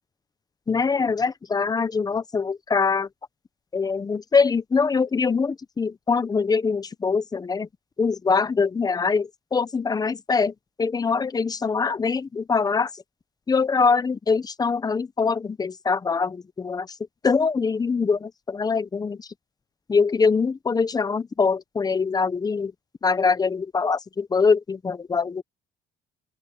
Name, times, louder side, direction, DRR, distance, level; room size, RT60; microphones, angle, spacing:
voice 1, 0.7-3.1 3.7-7.7 8.0-10.5 10.8-12.9 13.5-16.9 17.2-19.3 19.9-22.7 23.0-25.4, left 5 dB, 25° left, 1.0 m, -23 dB
open air
cardioid pair, 110°, 17 cm